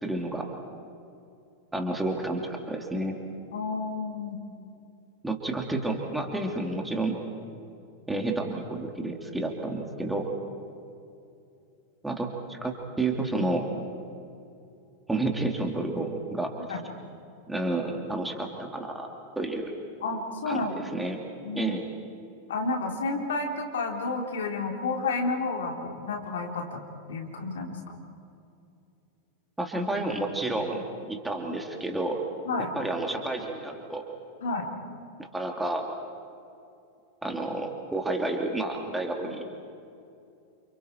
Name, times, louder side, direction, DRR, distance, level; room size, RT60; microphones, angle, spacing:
voice 1, 0.0-0.5 1.7-3.1 5.2-7.2 8.1-10.3 12.0-13.7 15.1-16.5 17.5-19.1 19.4-19.7 20.5-21.2 21.5-21.8 29.6-32.2 32.7-34.0 35.2-35.9 37.2-39.4, right 2 dB, 5° right, 2 dB, 2.9 m, -30 dB
voice 2, 3.5-4.4 16.7-16.8 20.0-20.8 21.4-21.7 22.5-26.8 27.1-28.0 30.7-30.8 32.4-32.7 34.4-34.7, left 3 dB, 60° left, 2 dB, 3.4 m, -31 dB
29.5 x 29.0 x 4.5 m, 2.6 s
figure-of-eight pair, 90°, 0 cm